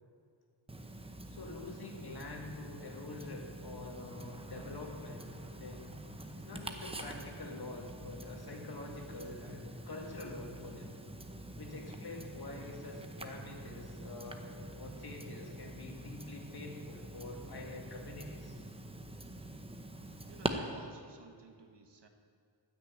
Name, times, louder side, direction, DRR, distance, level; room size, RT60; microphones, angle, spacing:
Tick-tock, 0.7-20.5, right 1 dB, 15° right, 0.8 m, -45 dB
voice 1, 1.3-5.3 5.6-5.9 6.4-11.0 11.6-14.5 14.8-18.6, left 2 dB, 55° left, 0 dB, 2.1 m, -46 dB
voice 2, 20.3-22.1, right 4 dB, 65° right, 5 dB, 1.2 m, -53 dB
13.0 x 6.2 x 8.8 m, 2.2 s
wide cardioid pair, 100°, 44 cm